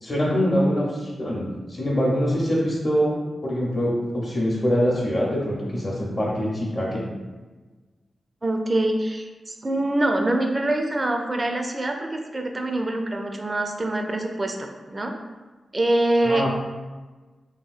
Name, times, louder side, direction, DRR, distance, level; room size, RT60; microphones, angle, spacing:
voice 1, 0.0-3.1 3.4-7.0 16.2-16.5, equal, 40° left, -5 dB, 0.6 m, -24 dB
voice 2, 8.4-15.1 15.7-16.5, right 1 dB, 30° right, 3 dB, 0.4 m, -24 dB
3.1 x 2.7 x 2.4 m, 1.3 s
cardioid pair, 70°, 0 cm